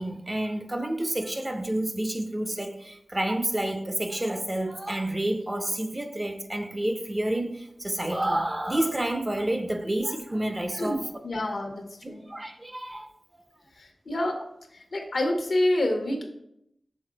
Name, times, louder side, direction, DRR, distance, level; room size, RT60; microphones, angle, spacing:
voice 1, 0.0-11.1 12.0-13.4, right 1 dB, 30° right, 6 dB, 0.7 m, -29 dB
voice 2, 11.2-12.2 13.8-14.4 14.7-16.2, left 1 dB, 75° left, 3 dB, 1.1 m, -27 dB
6.4 x 3.8 x 3.9 m, 0.78 s
cardioid pair, 45°, 0 cm